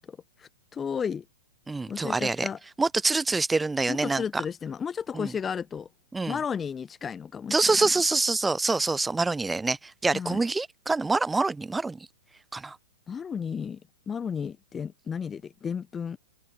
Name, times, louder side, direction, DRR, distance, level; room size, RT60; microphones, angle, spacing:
voice 1, 0.1-1.2 1.9-2.6 3.9-5.9 6.3-7.6 10.1-10.4 13.1-13.8 14.1-16.2, left 7 dB, 15° left, 1.3 m, -33 dB
voice 2, 1.7-2.5 2.8-4.4 5.1-5.3 6.1-6.4 7.5-12.1 12.5-12.8, right 3 dB, 10° right, 2.2 m, -26 dB
hypercardioid pair, 135°, 0 cm